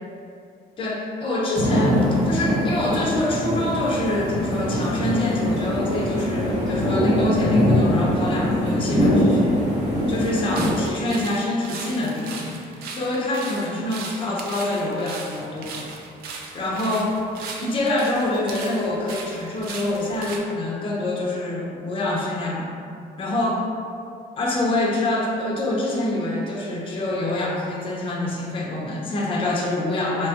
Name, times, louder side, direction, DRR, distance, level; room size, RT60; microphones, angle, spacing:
voice 1, 0.8-9.6 10.1-15.9 16.5-17.2 17.6-22.7 23.2-23.7 24.4-30.3, left 2 dB, 30° left, -3 dB, 0.5 m, -25 dB
sound 1, 1.5-10.9, equal, 45° right, 0.8 m, -22 dB
sound 2, 10.1-20.4, right 4 dB, 65° right, 0.4 m, -38 dB
2.8 x 2.2 x 2.7 m, 2.4 s
cardioid pair, 110°, 17 cm